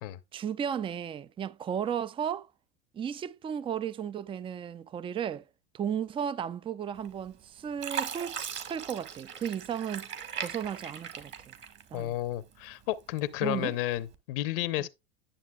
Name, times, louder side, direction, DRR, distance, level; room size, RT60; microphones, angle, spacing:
voice 1, 0.3-2.5 2.9-5.4 5.7-8.4 8.7-11.5 11.9-12.2 13.4-13.7 14.8-14.9, right 8 dB, 20° right, 0.4 m, -34 dB
Fill (with liquid), 7.0-7.4 7.8-12.2 12.6-13.4 14.0-14.1, right 8 dB, 40° right, 1.7 m, -39 dB
voice 2, 11.9-14.9, left 14 dB, 65° left, 0.8 m, -32 dB
10.0 x 7.2 x 2.3 m
hypercardioid pair, 95°, 30 cm